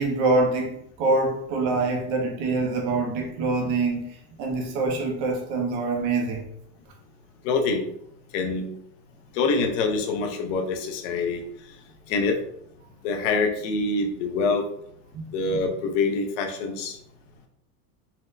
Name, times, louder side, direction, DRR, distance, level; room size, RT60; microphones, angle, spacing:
voice 1, 0.0-4.1 4.4-6.5 15.1-15.3, right 3 dB, 35° right, 0.4 m, -25 dB
voice 2, 7.4-7.8 8.3-8.7 9.3-11.4 12.1-12.4 13.0-14.7 15.3-17.0, left 4 dB, 50° left, 0.6 m, -25 dB
4.2 x 2.0 x 2.5 m
supercardioid pair, 170°, 48 cm